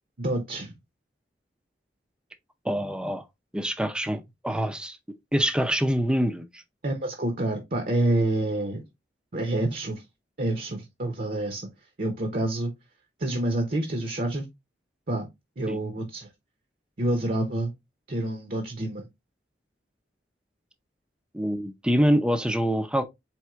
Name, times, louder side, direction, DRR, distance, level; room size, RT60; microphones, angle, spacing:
voice 1, 0.2-0.7 6.8-8.8 9.3-10.0 10.4-11.7 12.0-12.7 13.2-14.4 15.1-15.3 15.6-16.3 17.0-17.7 18.1-19.1, right 1 dB, 55° right, 0.8 m, -27 dB
voice 2, 2.6-3.2 3.5-5.0 5.3-6.6 15.7-15.8 21.3-23.0, equal, 5° right, 0.5 m, -25 dB
4.5 x 3.5 x 2.4 m
head